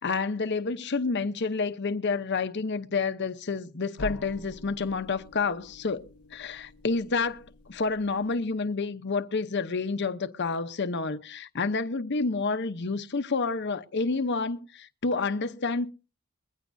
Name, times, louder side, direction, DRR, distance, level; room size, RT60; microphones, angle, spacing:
voice 1, 0.0-15.9, left 4 dB, 50° left, 0.8 m, -29 dB
sound 1, 4.0-8.7, left 2 dB, 85° left, 0.7 m, -45 dB
21.0 x 15.5 x 2.6 m
head